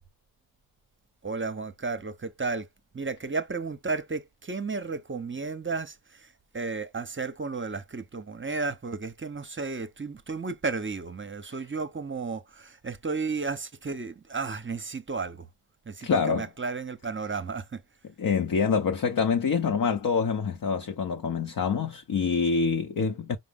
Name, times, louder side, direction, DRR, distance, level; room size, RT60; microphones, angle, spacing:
voice 1, 1.2-2.7 2.9-15.5 15.9-17.8, right 4 dB, 25° right, 0.9 m, -33 dB
voice 2, 16.0-16.5 18.2-23.4, left 5 dB, 45° left, 0.8 m, -26 dB
4.9 x 2.1 x 3.6 m
supercardioid pair, 40°, 50 cm